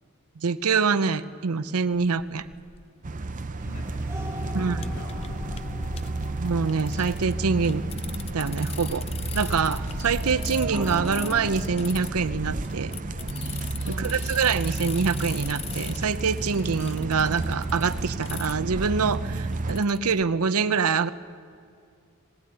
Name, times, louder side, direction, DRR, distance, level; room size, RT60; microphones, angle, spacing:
voice 1, 0.4-2.4 4.5-4.9 6.4-7.9 8.3-9.1 9.3-12.9 13.9-21.1, right 5 dB, 85° right, 14 dB, 0.7 m, -25 dB
sound 1, 1.9-20.2, left 4 dB, 25° left, 0.5 m, -40 dB
sound 2, 3.0-19.8, right 3 dB, 35° right, 0.6 m, -32 dB
voice 2, 3.5-4.1 4.4-6.0 13.8-14.2, left 2 dB, 75° left, -2 dB, 6.8 m, -44 dB
sound 3, 3.6-11.6, equal, 10° right, 1.4 m, -40 dB
19.5 x 19.0 x 8.8 m, 2.3 s
head